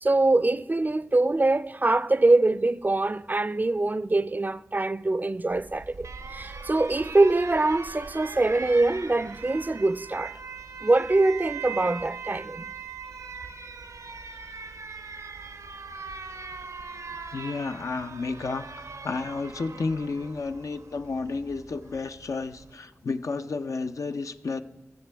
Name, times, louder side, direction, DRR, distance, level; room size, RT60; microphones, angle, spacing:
voice 1, 0.0-10.4 10.8-12.6, right 2 dB, 35° right, 0.4 m, -23 dB
Alarm, 5.5-22.7, right 5 dB, 85° right, 0.7 m, -41 dB
voice 2, 17.3-24.6, left 4 dB, 80° left, 0.5 m, -32 dB
18.5 x 7.6 x 3.4 m
cardioid pair, 45°, 5 cm